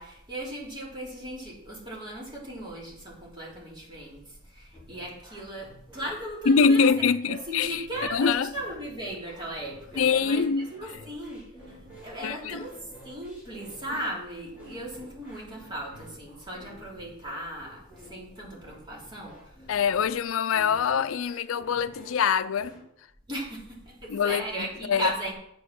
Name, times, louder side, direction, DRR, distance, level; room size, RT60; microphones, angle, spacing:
voice 1, 0.0-12.7 13.0-19.7 23.3-25.3, right 1 dB, 20° right, 3.1 m, -37 dB
sound 1, 4.7-22.8, equal, 5° right, 4.1 m, -50 dB
voice 2, 6.5-7.8 8.1-8.5 10.0-10.7 12.2-12.7 19.7-22.8 24.1-25.1, left 6 dB, 80° left, 0.4 m, -24 dB
8.2 x 7.9 x 6.0 m
head